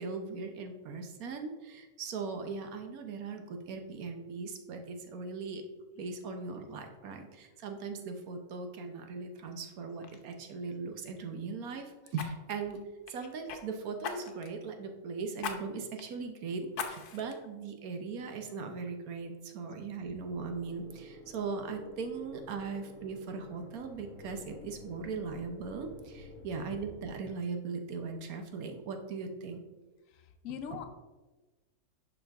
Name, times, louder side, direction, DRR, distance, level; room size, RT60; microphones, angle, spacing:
voice 1, 0.0-5.6 6.0-12.8 13.1-29.6 30.7-30.8, right 4 dB, 70° right, 5 dB, 1.2 m, -39 dB
Fire, 9.5-9.7 10.0-10.2 12.1-13.6 14.0-14.6 15.4-15.6 16.0-16.1 16.7-17.3 17.9-18.0, left 7 dB, 80° left, 1.3 m, -40 dB
sound 1, 20.3-27.1, left 1 dB, 35° left, 2.0 m, -51 dB
voice 2, 30.1-30.9, left 8 dB, 65° left, 6 dB, 1.0 m, -42 dB
11.0 x 3.8 x 3.4 m, 1.2 s
omnidirectional pair, 1.6 m